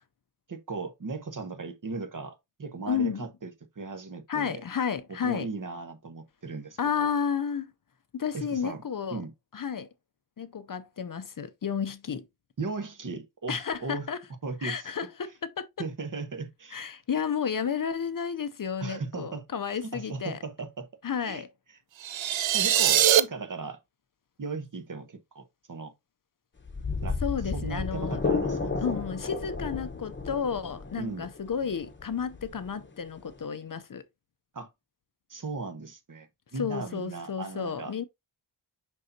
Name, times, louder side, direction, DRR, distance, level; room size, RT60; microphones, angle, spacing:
voice 1, 0.5-4.6 5.2-7.1 8.3-8.8 9.1-9.3 12.6-14.1 14.4-14.8 15.8-16.8 18.8-19.4 19.8-20.9 21.2-21.4 22.5-23.8 24.4-25.9 27.0-27.2 27.5-28.8 31.0-31.3 34.5-34.7 35.3-37.9, right 4 dB, 45° right, 1.1 m, -37 dB
voice 2, 2.9-3.3 4.3-5.5 6.8-7.7 8.1-9.2 9.5-9.9 10.4-12.2 13.5-14.2 14.6-15.7 16.7-20.4 21.0-21.5 27.2-28.2 28.8-34.0 36.6-38.0, left 7 dB, 45° left, 0.6 m, -32 dB
sound 1, 22.0-23.2, right 10 dB, 90° right, 0.6 m, -22 dB
sound 2, 26.6-33.4, left 4 dB, 25° left, 0.9 m, -33 dB
6.5 x 5.5 x 2.7 m
wide cardioid pair, 135°, 45 cm